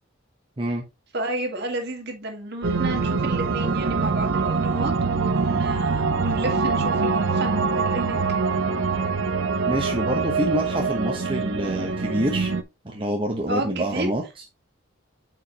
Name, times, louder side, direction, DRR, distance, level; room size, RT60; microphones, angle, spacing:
voice 1, 1.1-8.2 13.5-14.1, right 2 dB, 50° right, 1.9 m, -31 dB
sound 1, 2.6-12.6, right 4 dB, 75° right, 0.7 m, -24 dB
voice 2, 9.7-12.5 12.8-14.2, right 1 dB, 25° right, 1.0 m, -26 dB
8.4 x 5.1 x 2.9 m
head